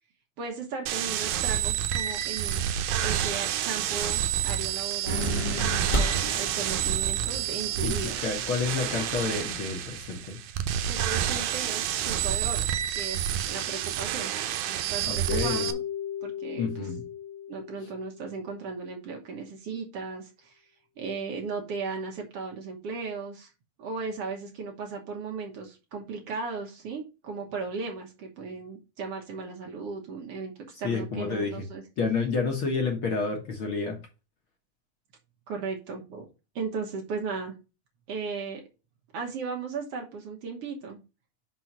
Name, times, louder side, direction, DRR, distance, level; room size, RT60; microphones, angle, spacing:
voice 1, 0.4-2.7 3.0-5.4 5.9-8.1 10.9-14.3 14.9-15.8 16.2-16.9 17.5-20.6 21.0-23.5 23.8-30.5 30.8-31.8 35.5-36.3 36.6-37.6 38.1-38.6 39.1-41.0, right 4 dB, 60° right, 1 dB, 1.9 m, -36 dB
sound 1, 0.9-15.7, right 10 dB, 85° right, 2.2 m, -29 dB
sound 2, 5.1-9.9, left 1 dB, 35° left, 0.7 m, -35 dB
voice 2, 7.8-10.4 15.1-15.7 16.6-17.0 30.8-31.7 32.0-34.0, left 4 dB, 50° left, 2 dB, 1.8 m, -29 dB
Keyboard (musical), 15.3-18.5, left 9 dB, 75° left, 2.4 m, -36 dB
5.8 x 3.9 x 6.0 m, 0.29 s
omnidirectional pair, 3.4 m